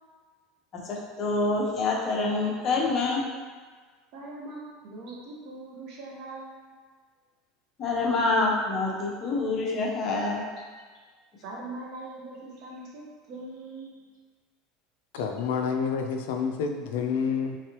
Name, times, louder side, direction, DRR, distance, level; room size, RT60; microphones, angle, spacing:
voice 1, 0.7-3.2 7.8-10.4, left 3 dB, 35° left, -2 dB, 0.8 m, -26 dB
voice 2, 4.1-6.5 10.6-10.7 11.4-14.0 15.2-15.3, right 2 dB, 60° right, -3 dB, 0.9 m, -41 dB
voice 3, 15.1-17.6, left 6 dB, 80° left, 4 dB, 0.3 m, -28 dB
3.6 x 3.1 x 2.9 m, 1.5 s
supercardioid pair, 130°, 0 cm